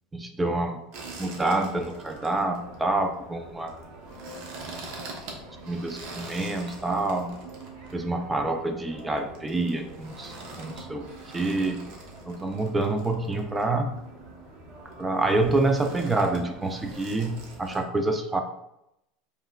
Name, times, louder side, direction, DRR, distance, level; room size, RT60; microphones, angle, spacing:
voice 1, 0.1-0.8 1.2-3.7 5.7-7.3 7.9-11.0 11.3-11.8 12.3-13.9 15.0-18.4, right 2 dB, 10° right, 5 dB, 0.5 m, -27 dB
sound 1, 0.9-17.8, right 2 dB, 60° right, 1.0 m, -43 dB
5.3 x 3.2 x 2.4 m, 0.82 s
supercardioid pair, 135°, 0 cm